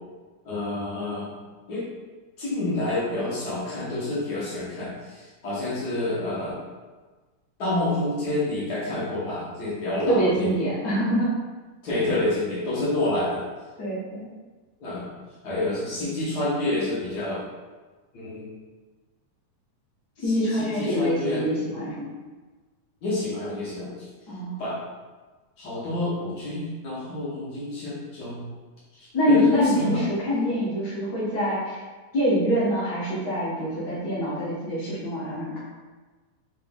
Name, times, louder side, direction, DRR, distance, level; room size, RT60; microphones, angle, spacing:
voice 1, 0.4-1.3 1.7-1.8 2.4-6.5 7.6-10.5 11.8-13.4 14.8-15.1 15.4-17.4 18.1-18.5 20.2-21.4 23.0-23.9 24.6-24.8 25.6-28.5 29.0-30.1, left 2 dB, 75° left, -9 dB, 0.9 m, -28 dB
voice 2, 10.1-11.3 13.8-14.2 20.2-22.1 24.3-24.6 29.1-31.8 32.1-35.6, equal, 55° left, -7 dB, 1.1 m, -24 dB
5.6 x 3.7 x 2.3 m, 1.3 s
omnidirectional pair, 3.5 m